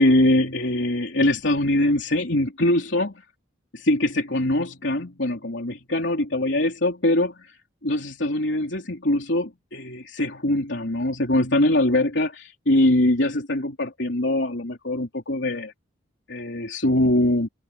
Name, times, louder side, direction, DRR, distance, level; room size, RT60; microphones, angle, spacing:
voice 1, 0.0-3.2 3.7-7.3 7.8-15.7 16.3-17.5, left 1 dB, 65° left, 3.5 m, -22 dB
open air
head